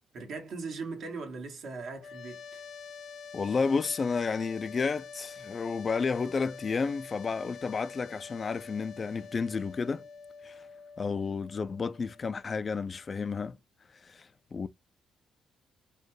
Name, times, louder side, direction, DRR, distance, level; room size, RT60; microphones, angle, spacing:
voice 1, 0.1-2.6, right 4 dB, 65° right, 1.6 m, -39 dB
sound 1, 2.0-13.1, left 5 dB, 85° left, 0.9 m, -47 dB
voice 2, 3.3-10.0 10.4-10.6 11.0-13.6 14.0-14.7, left 5 dB, 40° left, 0.4 m, -31 dB
4.3 x 2.3 x 3.1 m
cardioid pair, 90°, 0 cm